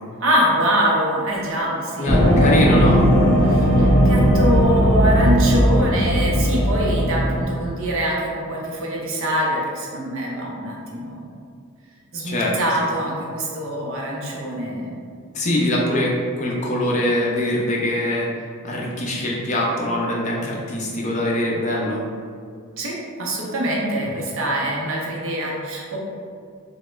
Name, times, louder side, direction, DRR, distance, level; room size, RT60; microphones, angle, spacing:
voice 1, 0.2-2.1 3.4-11.3 12.1-15.0 22.8-26.0, equal, 65° right, -3 dB, 0.6 m, -24 dB
voice 2, 2.0-3.0 12.2-12.9 15.3-18.3 18.6-22.0 24.0-24.1, left 1 dB, 35° left, -3 dB, 0.4 m, -23 dB
sound 1, 2.1-7.4, equal, 50° left, 0.9 m, -17 dB
3.2 x 2.1 x 3.0 m, 2.1 s
head